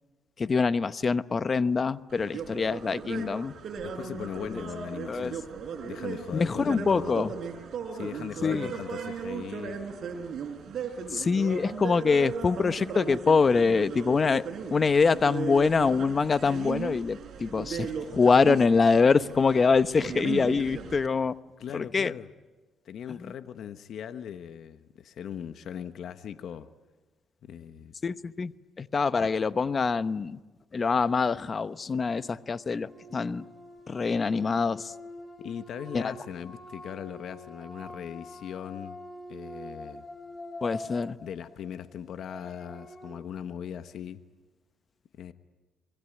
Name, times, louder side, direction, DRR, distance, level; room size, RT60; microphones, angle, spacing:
voice 1, 0.4-3.5 4.4-4.6 5.1-5.3 6.3-7.3 8.4-8.7 11.1-21.3 21.7-22.1 23.2-23.3 28.0-28.5 28.8-30.4 30.7-33.4 33.9-34.9 35.9-36.1 40.6-41.2, left 5 dB, 35° left, 14 dB, 1.0 m, -25 dB
sound 1, 2.1-21.1, right 6 dB, 60° right, 4.3 m, -37 dB
voice 2, 3.8-5.4 5.8-7.4 7.9-9.8 21.6-22.3 22.8-26.7 27.5-27.9 29.2-29.3 35.4-39.0 39.3-40.0 41.2-44.2 45.2-45.3, left 9 dB, 70° left, 10 dB, 1.2 m, -39 dB
sound 2, 32.6-43.1, left 1 dB, 15° left, 3.6 m, -45 dB
25.5 x 22.0 x 10.0 m, 1.2 s
cardioid pair, 90°, 0 cm